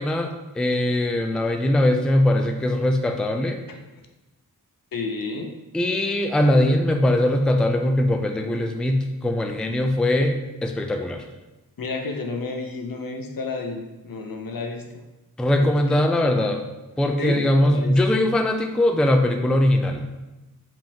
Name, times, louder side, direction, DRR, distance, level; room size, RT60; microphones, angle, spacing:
voice 1, 0.0-3.6 5.7-11.2 15.4-16.6 17.0-20.1, left 1 dB, ahead, 5 dB, 0.4 m, -21 dB
voice 2, 4.9-5.6 11.8-14.8 15.6-16.0 17.2-18.0, left 3 dB, 65° left, 3 dB, 0.7 m, -31 dB
5.1 x 3.6 x 2.8 m, 1.0 s
wide cardioid pair, 55°, 37 cm